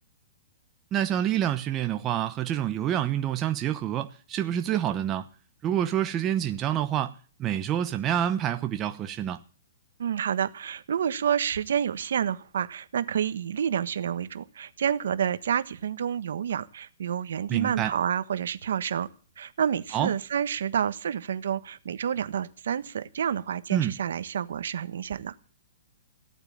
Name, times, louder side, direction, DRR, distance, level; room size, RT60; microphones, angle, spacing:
voice 1, 0.9-5.2 5.6-7.1 7.4-9.4 17.5-17.9 19.9-20.1 23.7-23.9, right 10 dB, 20° right, 0.9 m, -27 dB
voice 2, 10.0-19.1 19.4-25.3, right 8 dB, 70° right, 1.3 m, -29 dB
16.0 x 8.9 x 8.7 m
hypercardioid pair, 165°, 0 cm